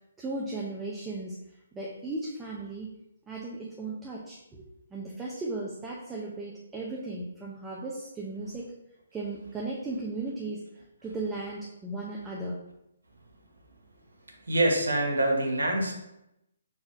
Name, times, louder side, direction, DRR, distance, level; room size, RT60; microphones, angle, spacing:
voice 1, 0.2-1.4 1.7-2.9 3.3-8.7 9.1-10.6 11.0-12.6, right 2 dB, 10° right, -4 dB, 0.6 m, -36 dB
voice 2, 14.4-15.9, right 1 dB, 90° right, 1 dB, 1.1 m, -25 dB
4.1 x 2.5 x 4.7 m, 0.86 s
hypercardioid pair, 150°, 0 cm